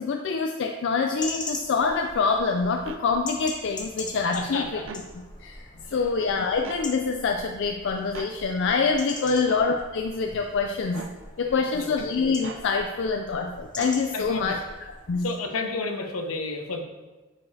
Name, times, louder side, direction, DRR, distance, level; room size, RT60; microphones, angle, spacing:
voice 1, 0.0-4.6 5.4-5.6 5.9-11.0 11.4-14.6 15.1-15.3, left 4 dB, 55° left, 4 dB, 0.4 m, -25 dB
sound 1, 1.2-15.2, left 2 dB, 20° left, 0.8 m, -41 dB
sound 2, 2.9-3.0 4.8-5.1 6.6-6.8 8.1-8.3 9.5-9.7 10.9-11.2 12.4-12.7 13.8-14.0, right 4 dB, 60° right, 0.5 m, -39 dB
voice 2, 4.3-4.9 5.7-6.1 9.2-9.4 11.4-12.0 14.1-14.6 15.2-16.8, left 3 dB, 70° left, 4 dB, 0.8 m, -32 dB
9.1 x 4.9 x 2.8 m, 1.2 s
head